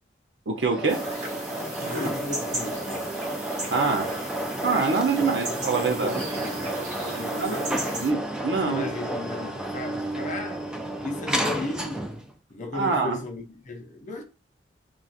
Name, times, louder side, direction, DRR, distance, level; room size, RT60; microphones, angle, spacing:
voice 1, 0.5-1.0 3.7-4.1 4.6-6.3 7.4-7.7 8.0-8.2 8.4-8.9 12.7-13.2, right 4 dB, 75° right, 0.6 m, -25 dB
Ascenseur-Arrivee, 0.6-12.3, right 1 dB, 5° right, 0.4 m, -32 dB
sound 1, 0.9-8.1, right 1 dB, 45° right, 1.1 m, -35 dB
voice 2, 1.8-3.1 5.5-6.6 7.1-8.2 8.6-10.6 11.0-12.1 12.5-14.2, left 2 dB, 45° left, 0.6 m, -36 dB
2.4 x 2.3 x 3.9 m
head